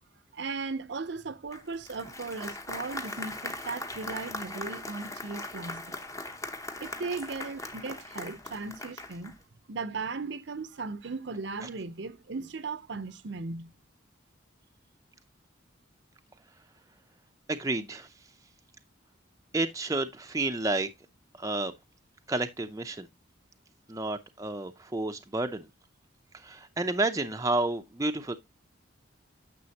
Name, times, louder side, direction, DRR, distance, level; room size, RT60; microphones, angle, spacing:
voice 1, 0.3-6.0 6.8-9.4 9.7-13.7, right 4 dB, 65° right, 0.7 m, -37 dB
Applause, 1.5-9.4, left 2 dB, 15° left, 0.8 m, -40 dB
voice 2, 17.5-18.1 19.5-20.9 21.4-21.7 22.3-23.1 23.9-25.7 26.4-28.3, right 2 dB, 15° right, 0.6 m, -30 dB
9.5 x 6.8 x 2.9 m
head